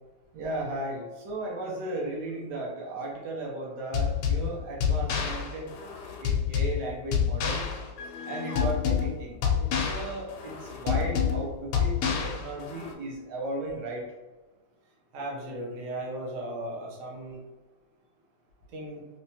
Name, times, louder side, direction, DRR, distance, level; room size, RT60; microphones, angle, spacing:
voice 1, 0.3-5.7 6.2-7.6 8.3-14.1, right 2 dB, 75° right, -2 dB, 1.3 m, -35 dB
sound 1, 3.9-12.9, left 7 dB, 80° left, 1.2 m, -28 dB
voice 2, 15.1-17.4 18.7-19.0, right 1 dB, 55° right, -2 dB, 1.0 m, -36 dB
3.2 x 3.1 x 2.7 m, 1.2 s
omnidirectional pair, 1.9 m